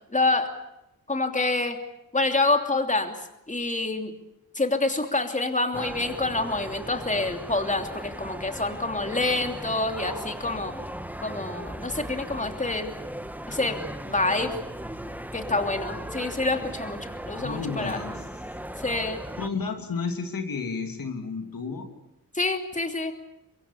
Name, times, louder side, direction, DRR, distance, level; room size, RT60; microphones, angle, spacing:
voice 1, 0.1-0.5 1.1-1.8 2.1-3.1 3.5-4.1 4.5-10.7 11.2-13.0 13.5-14.6 15.3-17.0 17.3-18.0 18.8-19.2 22.3-23.1, left 2 dB, 20° left, 5 dB, 3.0 m, -27 dB
sound 1, 5.7-19.5, right 1 dB, 5° right, 1.6 m, -37 dB
voice 2, 17.4-18.2 19.4-21.9, left 4 dB, 80° left, 4 dB, 3.2 m, -32 dB
24.5 x 22.0 x 8.6 m, 0.87 s
cardioid pair, 70°, 34 cm